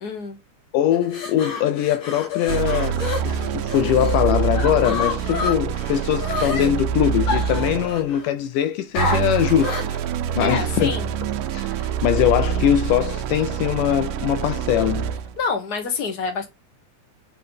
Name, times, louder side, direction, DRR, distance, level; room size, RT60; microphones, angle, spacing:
voice 1, 0.0-0.4 10.4-11.1 15.4-16.5, left 5 dB, 35° left, 2.0 m, -27 dB
voice 2, 0.7-10.0 10.4-10.9 11.5-15.1, left 11 dB, 80° left, 2.1 m, -22 dB
sound 1, 0.9-4.2 4.5-6.7 7.3-8.3 8.9-10.0, left 4 dB, 55° left, 2.8 m, -29 dB
sound 2, 2.5-8.1 9.0-15.4, right 8 dB, 85° right, 2.3 m, -26 dB
6.7 x 4.2 x 5.4 m
omnidirectional pair, 3.8 m